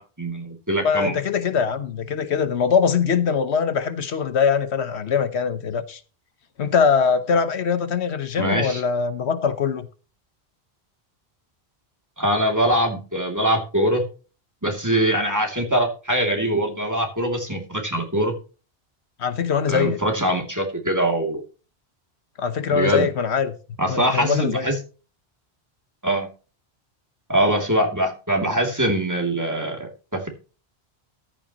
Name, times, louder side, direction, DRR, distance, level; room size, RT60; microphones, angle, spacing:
voice 1, 0.0-1.2 8.4-8.8 12.2-14.0 14.6-18.3 19.7-21.4 22.7-23.1 23.8-24.7 26.0-26.3 27.3-30.3, right 1 dB, 15° right, 2.7 m, -23 dB
voice 2, 0.8-6.0 6.6-9.9 19.2-20.0 22.4-23.6 23.9-24.7, left 6 dB, 85° left, 1.3 m, -22 dB
14.0 x 11.0 x 3.0 m
omnidirectional pair, 1.1 m